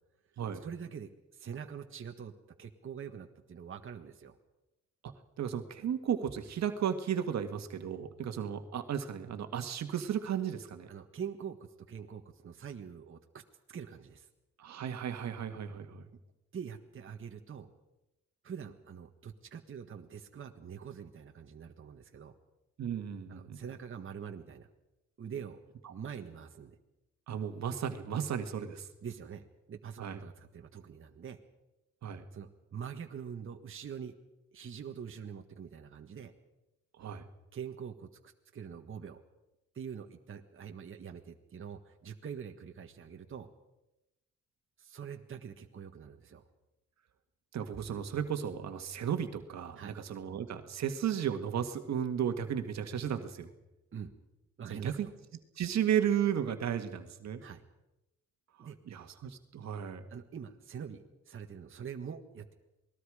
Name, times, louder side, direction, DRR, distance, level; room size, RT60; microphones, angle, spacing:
voice 1, 0.6-2.3 2.6-4.4 10.9-11.6 11.9-13.4 13.7-14.3 16.5-17.7 18.4-22.3 23.3-24.7 25.2-25.6 25.9-26.7 29.0-31.4 32.3-34.2 34.5-36.3 37.5-39.2 39.7-43.5 44.8-46.4 49.8-49.9 53.9-54.1 54.6-55.1 57.4-57.6 58.6-58.8 60.1-62.5, right 7 dB, 45° right, 4 dB, 1.6 m, -44 dB
voice 2, 5.0-10.9 14.6-16.1 22.8-23.6 25.8-25.9 27.3-28.9 30.0-30.2 32.0-32.3 37.0-37.3 47.5-53.5 54.7-55.1 55.6-57.4 58.6-60.1, right 9 dB, 60° right, 7 dB, 1.9 m, -34 dB
27.5 x 20.0 x 5.0 m, 0.99 s
cardioid pair, 90°, 30 cm